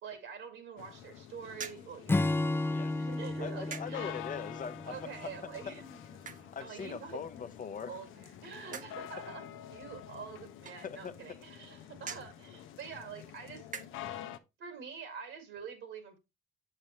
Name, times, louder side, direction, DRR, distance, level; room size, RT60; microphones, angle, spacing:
voice 1, 0.0-4.1 4.9-7.2 7.9-13.7 14.6-16.2, right 6 dB, 75° right, 2.1 m, -46 dB
sound 1, 0.8-14.4, left 11 dB, 90° left, 0.7 m, -48 dB
sound 2, 1.5-14.3, right 6 dB, 40° right, 0.8 m, -51 dB
Acoustic guitar / Strum, 2.1-5.6, left 2 dB, 10° left, 0.3 m, -33 dB
voice 2, 3.4-5.3 5.7-5.8 6.5-8.0 10.8-11.1, left 6 dB, 40° left, 0.8 m, -41 dB
7.2 x 6.7 x 3.0 m
cardioid pair, 90°, 20 cm